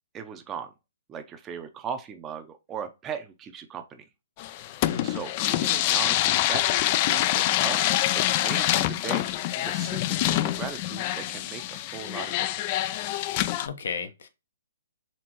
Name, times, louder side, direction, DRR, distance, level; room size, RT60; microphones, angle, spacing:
voice 1, 0.1-0.7 1.1-4.0 4.6-4.7 5.0-6.6 7.1-7.8 8.2-10.0 10.3-12.9, right 7 dB, 20° right, 0.6 m, -38 dB
sound 1, 4.4-13.7, left 14 dB, 40° left, 0.3 m, -26 dB
voice 2, 4.9-5.2 13.6-14.3, left 5 dB, 70° left, 0.8 m, -34 dB
4.4 x 3.3 x 3.1 m
hypercardioid pair, 140°, 0 cm